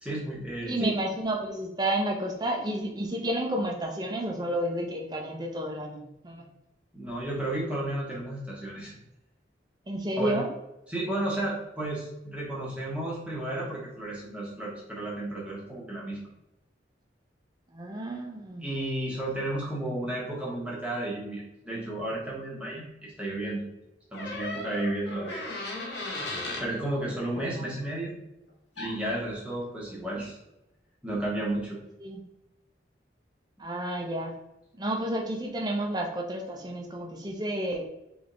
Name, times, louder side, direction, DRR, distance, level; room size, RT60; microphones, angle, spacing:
voice 1, 0.0-0.9 6.9-9.0 10.2-10.4 10.9-16.2 18.6-23.6 24.1-25.4 26.6-28.1 28.8-30.4 31.0-31.8, right 1 dB, 5° right, -5 dB, 1.1 m, -32 dB
voice 2, 0.7-6.4 9.9-10.5 17.7-18.7 27.6-27.7 32.0-32.2 33.6-34.4 34.8-37.8, right 1 dB, 20° right, 1 dB, 0.7 m, -31 dB
sound 1, 24.1-26.7 28.8-29.0, left 2 dB, 65° left, 1.3 m, -36 dB
3.5 x 3.4 x 3.9 m, 0.89 s
head